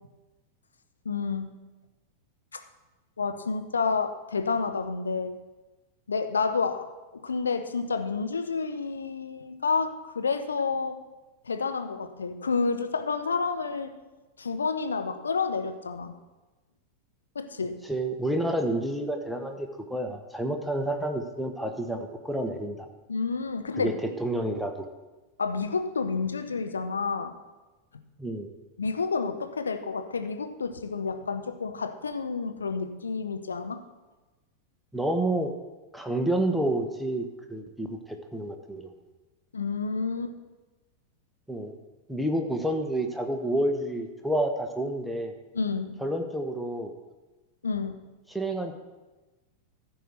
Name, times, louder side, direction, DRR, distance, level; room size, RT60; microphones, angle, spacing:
voice 1, 1.0-1.6 2.5-2.6 3.2-5.4 6.1-6.9 7.2-11.0 11.4-13.9 14.4-16.1 17.3-17.8 23.1-23.9 25.4-27.3 28.8-33.8 39.5-40.3 45.5-46.0 47.6-48.1, left 4 dB, 75° left, 7 dB, 0.8 m, -29 dB
voice 2, 17.9-22.8 23.8-24.9 28.2-28.5 34.9-35.5 35.9-38.9 41.5-41.8 42.1-45.3 46.0-46.9 48.3-48.7, right 1 dB, ahead, 4 dB, 1.0 m, -29 dB
14.0 x 4.7 x 6.6 m, 1.2 s
figure-of-eight pair, 90°, 0 cm